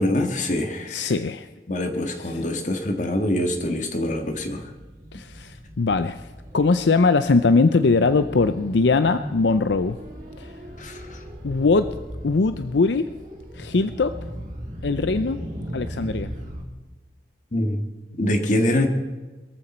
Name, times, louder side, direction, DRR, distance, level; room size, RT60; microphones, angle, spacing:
voice 1, 0.0-1.1 1.7-4.6 10.8-11.2 17.5-17.8 18.2-18.9, left 1 dB, 45° left, 5 dB, 1.7 m, -24 dB
voice 2, 0.9-1.5 2.2-2.4 5.1-6.3 6.5-10.0 10.4-10.5 11.4-11.9 12.2-13.1 13.5-14.2 14.8-15.4 15.7-16.3, left 3 dB, 85° left, 11 dB, 0.6 m, -21 dB
sound 1, 3.9-16.6, equal, 45° right, 3.2 m, -38 dB
22.0 x 14.5 x 4.4 m, 1.2 s
head